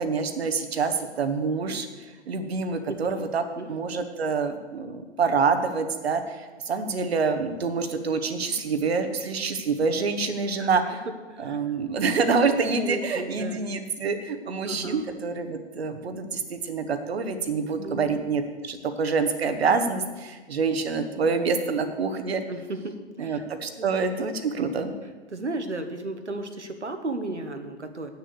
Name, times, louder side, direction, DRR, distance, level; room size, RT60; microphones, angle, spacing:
voice 1, 0.0-1.9 2.3-3.4 3.7-11.0 11.4-22.4 23.2-24.9, right 4 dB, 65° right, 8 dB, 1.2 m, -26 dB
voice 2, 12.8-13.6 14.7-15.0 17.7-18.1 22.5-23.4 23.8-23.9 25.3-28.1, right 2 dB, 80° right, 7 dB, 1.3 m, -34 dB
8.9 x 6.9 x 7.9 m, 1.3 s
figure-of-eight pair, 110°, 34 cm